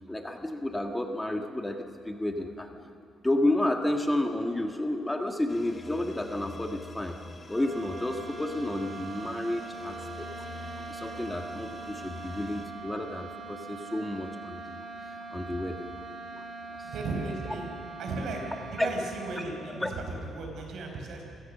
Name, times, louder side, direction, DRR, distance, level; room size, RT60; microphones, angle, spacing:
voice 1, 0.1-2.7 3.2-7.2 7.5-10.3 10.9-14.8 15.1-15.9 16.4-16.9 18.8-18.9 19.8-19.9, left 1 dB, 10° left, 4 dB, 1.7 m, -31 dB
sound 1, 5.5-12.6, left 3 dB, 30° left, 3.1 m, -46 dB
sound 2, 7.5-20.2, right 3 dB, 25° right, 4.4 m, -42 dB
voice 2, 16.8-17.7 18.0-21.3, right 3 dB, 70° right, 2 dB, 5.2 m, -35 dB
29.5 x 17.0 x 6.7 m, 2.5 s
cardioid pair, 90°, 0 cm